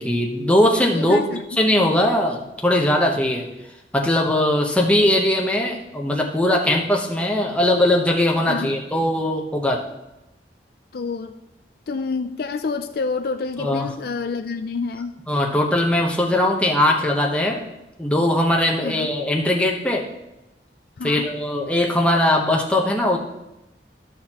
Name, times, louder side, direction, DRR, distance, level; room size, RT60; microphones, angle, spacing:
voice 1, 0.0-1.3 1.6-3.5 3.9-9.8 13.6-13.9 15.3-17.7 18.0-20.1 21.0-23.2, left 1 dB, 5° left, 0 dB, 0.9 m, -20 dB
voice 2, 0.9-1.6 8.5-8.7 10.9-11.3 11.9-15.2 18.8-19.1 21.0-21.3, left 4 dB, 60° left, 7 dB, 0.4 m, -28 dB
13.5 x 6.5 x 3.0 m, 0.93 s
head